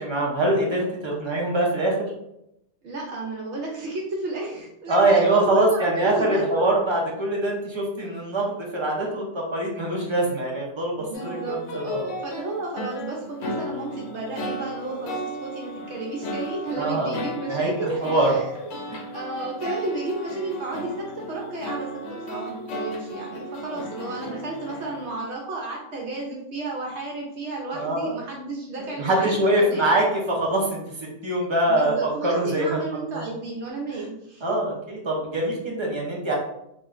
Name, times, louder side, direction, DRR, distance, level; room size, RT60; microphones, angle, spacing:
voice 1, 0.0-2.1 4.9-10.9 11.2-12.0 16.8-17.1 17.5-18.3 18.9-19.0 23.7-23.8 27.7-28.1 29.0-32.8 33.1-33.2 33.9-34.0 34.4-36.3, right 1 dB, 40° right, -2 dB, 0.4 m, -23 dB
voice 2, 2.8-6.6 11.0-18.7 19.1-21.9 22.3-29.3 29.6-29.9 31.7-34.6, right 2 dB, 70° right, -2 dB, 0.8 m, -32 dB
sound 1, 11.1-25.1, equal, 70° left, 0.8 m, -35 dB
2.4 x 2.1 x 3.6 m, 0.81 s
omnidirectional pair, 1.2 m